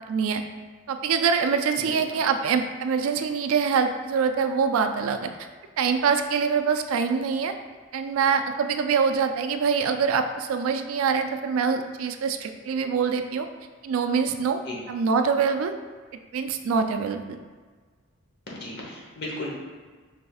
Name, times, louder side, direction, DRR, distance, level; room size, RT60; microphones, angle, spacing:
voice 1, 0.1-0.4 0.9-5.3 5.8-7.5 7.9-13.5 13.8-14.6 14.9-15.7 16.3-17.4, right 6 dB, 75° right, 8 dB, 0.3 m, -24 dB
voice 2, 1.8-2.2 14.7-14.8 18.5-19.6, left 1 dB, 50° left, -3 dB, 0.9 m, -36 dB
5.4 x 3.3 x 2.3 m, 1.4 s
head